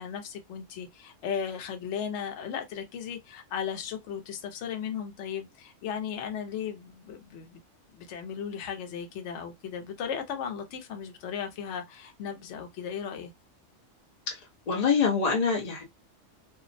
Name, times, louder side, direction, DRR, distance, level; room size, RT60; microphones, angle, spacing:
voice 1, 0.0-7.6 7.9-13.3, left 7 dB, 70° left, 0.9 m, -36 dB
voice 2, 14.7-15.8, left 5 dB, 45° left, 0.5 m, -25 dB
2.5 x 2.0 x 2.5 m
omnidirectional pair, 1.3 m